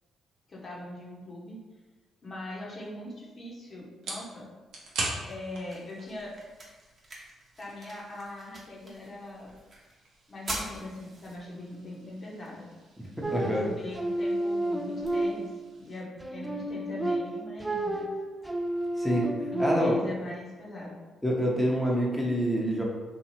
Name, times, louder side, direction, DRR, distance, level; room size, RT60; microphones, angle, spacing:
voice 1, 0.5-1.6 2.2-4.5 5.2-6.4 7.6-9.5 10.3-12.7 13.4-15.5 15.8-18.1 19.5-20.9, left 1 dB, 45° left, -4 dB, 0.8 m, -41 dB
sound 1, 2.8-16.0, right 2 dB, 70° right, 0.6 m, -44 dB
sound 2, 4.7-16.7, right 1 dB, 40° right, 0.8 m, -46 dB
voice 2, 13.2-13.6 19.0-19.3 19.6-19.9 21.2-22.8, equal, 5° left, -3 dB, 0.8 m, -26 dB
sound 3, 13.2-15.8 16.2-20.1, right 1 dB, 15° right, 0.3 m, -31 dB
2.7 x 2.3 x 3.0 m, 1.2 s
hypercardioid pair, 45°, 0 cm